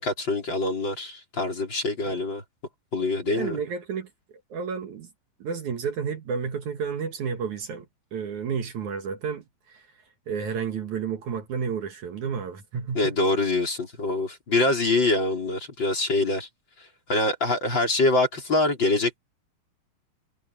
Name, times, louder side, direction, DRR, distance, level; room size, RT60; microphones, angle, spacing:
voice 1, 0.0-2.4 2.9-3.6 13.0-16.5 17.1-19.2, left 2 dB, 30° left, 5.2 m, -24 dB
voice 2, 3.3-4.1 4.5-5.1 5.4-7.9 8.1-9.8 10.3-13.2, right 6 dB, 60° right, 3.0 m, -31 dB
omnidirectional pair, 4.0 m